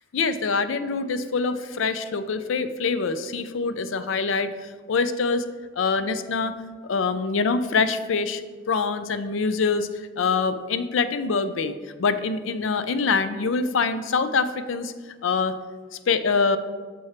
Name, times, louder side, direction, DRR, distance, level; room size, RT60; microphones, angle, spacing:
voice 1, 0.1-4.5 4.9-5.4 5.8-6.5 6.9-8.4 8.7-9.9 10.2-11.7 12.0-14.9 15.2-15.6 16.1-16.6, left 4 dB, 80° left, 11 dB, 0.4 m, -24 dB
6.9 x 4.3 x 4.8 m, 1.5 s
head